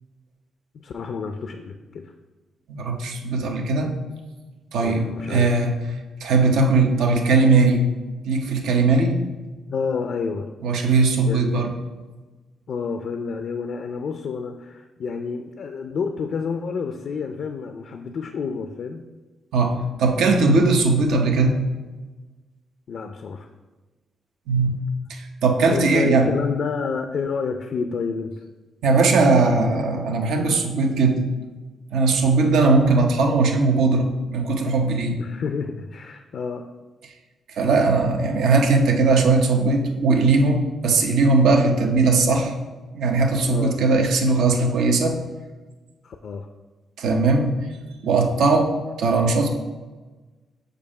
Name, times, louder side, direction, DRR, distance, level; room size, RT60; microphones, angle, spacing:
voice 1, 0.7-2.1 4.8-5.6 9.7-10.5 11.2-11.7 12.7-19.1 22.9-23.5 25.7-28.4 35.2-36.7 43.5-43.8 46.0-46.5, left 5 dB, 60° left, 6 dB, 0.4 m, -29 dB
voice 2, 2.7-3.9 4.7-5.8 6.2-7.9 8.3-9.2 10.6-11.7 19.5-21.5 24.5-24.8 25.1-26.3 28.8-31.2 31.9-35.2 37.5-42.5 42.9-45.2 47.0-47.5 48.0-48.7 49.0-49.5, right 3 dB, 80° right, 3 dB, 0.8 m, -19 dB
6.7 x 2.6 x 5.3 m, 1.2 s
cardioid pair, 80°, 0 cm